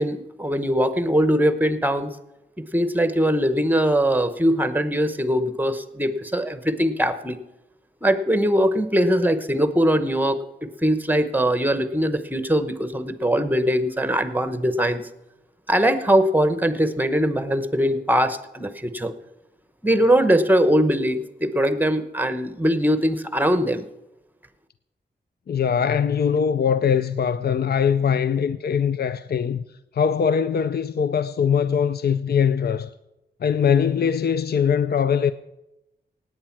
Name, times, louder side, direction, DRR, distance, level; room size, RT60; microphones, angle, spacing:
voice 1, 0.0-2.1 2.6-7.4 8.0-15.1 15.7-19.1 19.8-23.8, equal, 10° right, 1.0 m, -21 dB
voice 2, 25.5-29.6 29.9-32.9 33.4-35.3, left 7 dB, 60° left, 0.5 m, -21 dB
17.5 x 9.1 x 5.9 m
wide cardioid pair, 125°, 18 cm